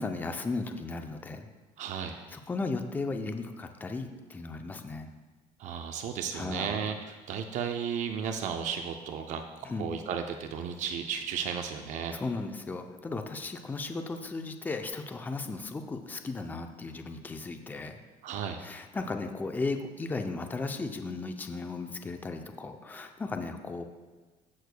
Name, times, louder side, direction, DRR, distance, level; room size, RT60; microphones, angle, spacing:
voice 1, 0.0-1.5 2.3-5.1 6.3-6.8 9.6-9.9 12.1-18.0 18.6-23.8, left 3 dB, 10° left, 6 dB, 0.5 m, -35 dB
voice 2, 1.8-2.2 5.6-12.2 18.2-18.6, right 7 dB, 55° right, 6 dB, 0.5 m, -34 dB
14.5 x 6.5 x 2.2 m, 1.3 s
cardioid pair, 145°, 15 cm